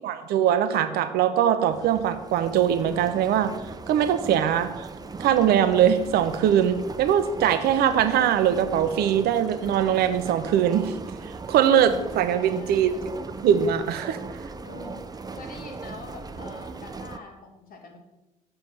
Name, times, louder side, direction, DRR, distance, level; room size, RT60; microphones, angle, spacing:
voice 1, 0.0-3.5 3.9-4.9 5.2-10.9 11.5-12.9 13.4-14.2, right 9 dB, 60° right, 11 dB, 0.7 m, -22 dB
sound 1, 1.7-17.2, right 4 dB, 20° right, 0.6 m, -38 dB
voice 2, 12.2-13.0 14.6-18.0, left 3 dB, 50° left, 2 dB, 2.0 m, -45 dB
7.2 x 6.7 x 5.8 m, 0.98 s
figure-of-eight pair, 50°, 19 cm